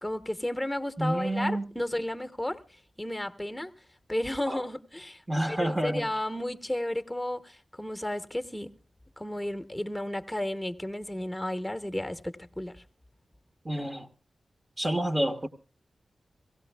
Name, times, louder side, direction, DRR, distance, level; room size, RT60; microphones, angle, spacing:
voice 1, 0.0-2.6 3.0-3.7 4.1-5.2 5.5-8.7 9.2-12.8, left 1 dB, 5° left, 1.0 m, -33 dB
voice 2, 1.0-1.7 4.5-4.6 5.3-6.1 13.6-14.1 14.8-15.5, right 1 dB, 25° right, 1.0 m, -29 dB
17.0 x 16.0 x 3.4 m
cardioid pair, 55°, 0 cm